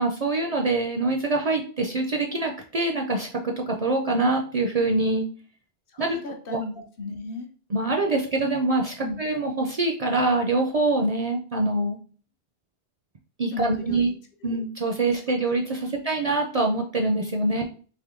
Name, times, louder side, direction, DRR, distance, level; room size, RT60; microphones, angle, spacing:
voice 1, 0.0-5.3 6.0-6.2 6.5-6.6 7.7-12.0 13.4-14.1 14.4-17.6, right 2 dB, 50° right, 2 dB, 0.5 m, -24 dB
voice 2, 5.9-7.5 9.0-9.2 13.5-14.1 14.4-14.6 15.1-15.3 15.9-16.0 17.6-17.7, left 2 dB, 65° left, 4 dB, 0.9 m, -36 dB
3.5 x 3.0 x 3.6 m, 0.41 s
omnidirectional pair, 1.1 m